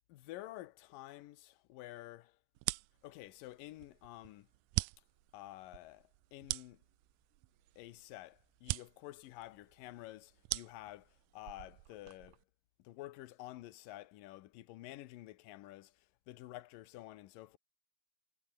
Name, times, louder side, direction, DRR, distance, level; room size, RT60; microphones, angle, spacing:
voice 1, 0.1-2.4 3.0-4.5 5.3-6.8 7.8-12.4 12.8-17.6, left 16 dB, 80° left, 2.6 m, -50 dB
sound 1, 2.5-12.4, right 21 dB, 85° right, 1.8 m, -43 dB
omnidirectional pair, 3.9 m